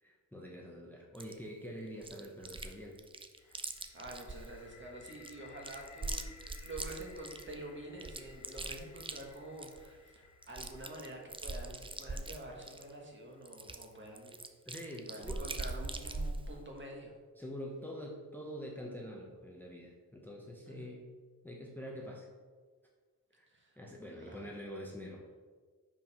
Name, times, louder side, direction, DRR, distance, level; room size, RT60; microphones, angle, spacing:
voice 1, 0.0-3.0 3.4-3.7 14.7-15.5 17.4-21.1 21.4-22.3 23.3-23.5 23.8-25.4, equal, 5° left, -2 dB, 0.8 m, -45 dB
Chewing mastication, 1.1-1.3 2.0-2.7 3.0-4.5 5.0-7.5 8.0-9.9 10.1-10.2 10.4-12.9 13.5-16.5, right 2 dB, 15° right, 0.4 m, -41 dB
sound 1, 3.4-15.2, left 5 dB, 55° left, 0.7 m, -60 dB
voice 2, 3.8-14.5 15.1-17.1 20.7-20.8 23.5-23.7 24.3-24.5, right 1 dB, 35° right, 0 dB, 1.5 m, -48 dB
5.5 x 5.3 x 5.5 m, 1.5 s
wide cardioid pair, 125°, 35 cm